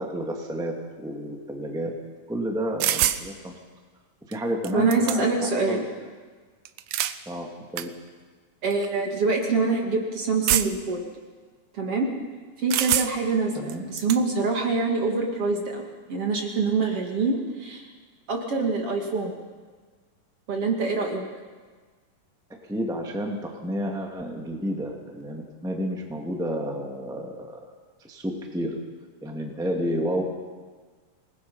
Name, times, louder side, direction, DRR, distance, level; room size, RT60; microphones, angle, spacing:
voice 1, 0.0-1.9 2.3-3.5 4.3-5.9 7.2-7.5 7.7-7.9 13.5-13.8 22.7-27.6 28.0-28.8 29.2-30.2, equal, ahead, 1 dB, 1.4 m, -30 dB
sound 1, 2.8-3.2 4.3-4.4 4.6-5.5 6.7-7.2 7.8-7.9 8.7-8.9 10.5-10.9 12.7-13.3 13.7-14.2, right 12 dB, 85° right, 1.5 m, -25 dB
voice 2, 4.7-5.8 8.6-11.0 11.7-12.1 12.6-15.8 16.1-17.8 18.3-19.4 20.5-21.2, right 4 dB, 45° right, 1 dB, 2.7 m, -25 dB
26.5 x 20.0 x 5.6 m, 1.5 s
omnidirectional pair, 4.0 m